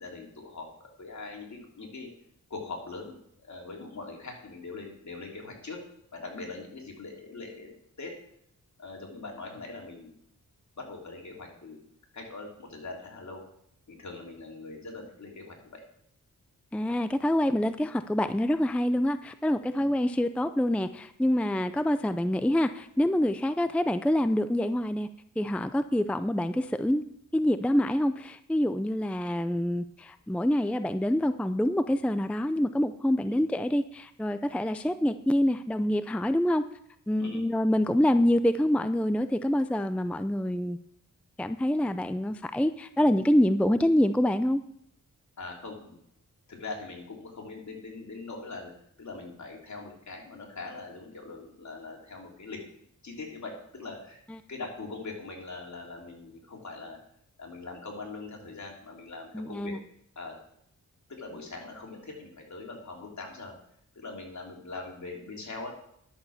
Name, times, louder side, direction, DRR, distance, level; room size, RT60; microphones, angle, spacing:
voice 1, 0.0-2.1 2.5-5.8 6.1-7.7 8.0-8.1 8.8-10.1 10.8-11.8 12.1-13.4 13.9-15.8 19.7-19.8 33.3-33.4 37.2-37.4 45.4-46.0 46.5-48.7 49.0-52.6 53.0-54.2 54.5-57.0 57.4-59.7 60.1-60.4 61.1-63.5 63.9-65.7, left 3 dB, 55° left, 0 dB, 3.3 m, -42 dB
voice 2, 16.7-25.1 25.4-27.0 27.3-36.6 37.1-40.8 41.4-44.6 54.3-54.4 59.3-59.8, left 1 dB, 5° left, 11 dB, 0.4 m, -26 dB
11.0 x 6.9 x 7.1 m, 0.71 s
wide cardioid pair, 90°, 33 cm